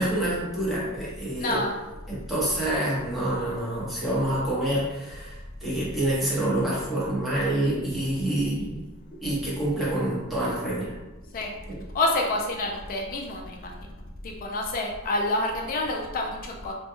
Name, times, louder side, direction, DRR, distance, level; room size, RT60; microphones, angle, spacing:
voice 1, 0.0-1.6 2.1-8.8 9.2-10.9 11.7-11.8, right 1 dB, ahead, -9 dB, 0.7 m, -27 dB
voice 2, 1.4-1.7 11.3-11.5 11.9-13.6 14.2-16.7, left 2 dB, 40° left, 0 dB, 0.3 m, -28 dB
2.2 x 2.1 x 2.9 m, 1.1 s
head